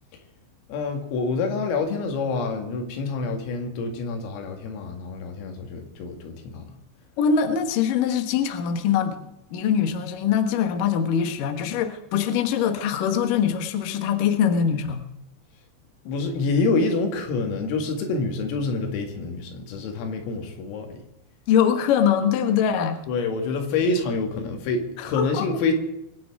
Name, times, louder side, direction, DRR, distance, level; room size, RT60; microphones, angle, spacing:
voice 1, 0.7-6.7 16.1-21.0 23.1-25.7, left 3 dB, 90° left, 4 dB, 4.7 m, -27 dB
voice 2, 7.2-9.2 9.5-15.1 21.5-23.0 25.0-25.5, left 8 dB, 70° left, 7 dB, 2.1 m, -23 dB
23.5 x 9.4 x 4.8 m, 0.87 s
omnidirectional pair, 5.8 m